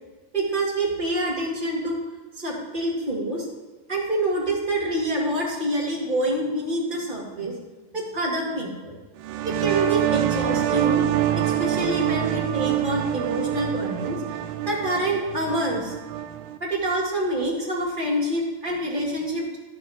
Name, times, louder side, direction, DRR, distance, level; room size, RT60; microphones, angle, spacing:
voice 1, 0.3-2.0 2.3-3.5 3.9-7.5 7.9-9.0 9.4-11.0 11.3-14.2 14.6-15.9 16.6-19.6, right 1 dB, 25° right, -4 dB, 1.0 m, -26 dB
sound 1, 9.2-16.6, right 12 dB, 80° right, 2.2 m, -25 dB
12.0 x 10.5 x 3.6 m, 1.2 s
omnidirectional pair, 4.6 m